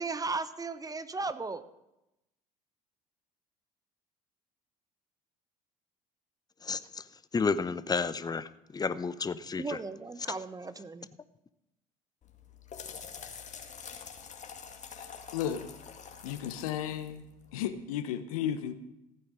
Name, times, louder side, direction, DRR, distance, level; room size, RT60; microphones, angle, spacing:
voice 1, 0.0-1.7 9.6-11.1, right 3 dB, 20° right, 13 dB, 0.9 m, -36 dB
voice 2, 6.6-7.0 7.3-9.8, left 5 dB, 20° left, 15 dB, 0.7 m, -31 dB
sound 1, 12.2-17.8, left 6 dB, 40° left, 1.9 m, -46 dB
voice 3, 15.3-15.7 16.2-17.3 17.5-18.7, left 10 dB, 75° left, 12 dB, 0.9 m, -33 dB
15.0 x 8.6 x 6.3 m, 0.91 s
hypercardioid pair, 60°, 18 cm